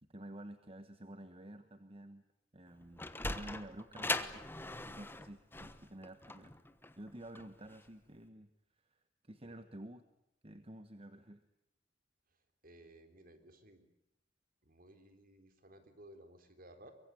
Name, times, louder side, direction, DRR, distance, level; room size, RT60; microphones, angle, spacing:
voice 1, 0.1-2.2 2.5-4.4 4.9-6.5 7.0-8.5 8.8-10.0 10.4-11.4, right 1 dB, 30° right, 10 dB, 1.3 m, -51 dB
Sliding door, 2.7-7.9, left 2 dB, 10° left, 1.2 m, -40 dB
voice 2, 12.6-13.9 14.6-16.9, right 1 dB, 50° right, 8 dB, 3.7 m, -58 dB
24.0 x 23.0 x 9.2 m, 0.80 s
head